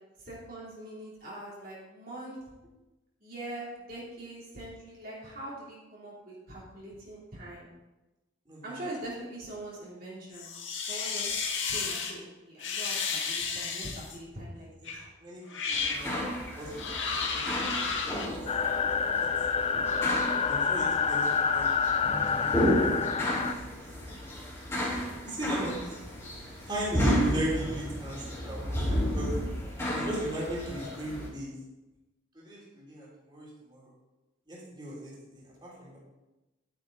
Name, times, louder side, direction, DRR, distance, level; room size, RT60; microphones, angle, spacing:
voice 1, 0.2-2.4 3.2-7.7 8.6-10.5 10.8-11.4 11.7-15.0, right 1 dB, 50° right, -6 dB, 3.2 m, -42 dB
sound 1, 10.3-12.1 12.6-14.2 14.9-15.0 15.5-16.1 16.8-18.3, left 5 dB, 75° left, 1.9 m, -32 dB
voice 2, 15.2-16.2 16.6-16.9 17.3-17.6 18.1-18.4 19.2-19.3 20.5-21.7 22.0-23.5 24.0-24.1 24.9-25.9 26.7-29.4 29.9-31.5 32.3-33.9 34.5-36.0, right 1 dB, 25° right, -6 dB, 3.3 m, -37 dB
sound 2, 15.7-31.3, equal, 15° left, 3.3 m, -33 dB
sound 3, 18.5-23.5, left 6 dB, 30° left, 0.4 m, -27 dB
11.0 x 9.1 x 4.1 m, 1.0 s
head